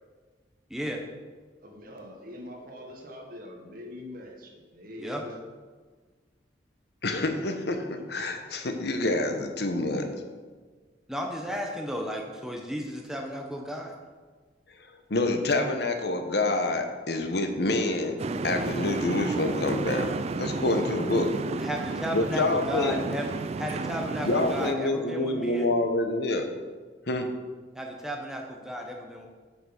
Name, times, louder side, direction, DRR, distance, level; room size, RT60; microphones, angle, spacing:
voice 1, 0.7-1.0 5.0-5.2 11.1-13.9 21.6-23.3 23.6-25.7 27.7-29.3, equal, 5° right, 1 dB, 0.7 m, -34 dB
voice 2, 1.6-5.4, left 1 dB, 50° right, 1 dB, 1.5 m, -43 dB
voice 3, 7.0-10.1 15.1-18.2 18.4-20.1 20.4-21.3 22.1-23.0 24.2-26.5 27.1-27.3, left 2 dB, 60° left, 5 dB, 0.9 m, -27 dB
sound 1, 18.2-24.7, right 3 dB, 35° right, 0.3 m, -32 dB
7.8 x 5.9 x 5.9 m, 1.5 s
head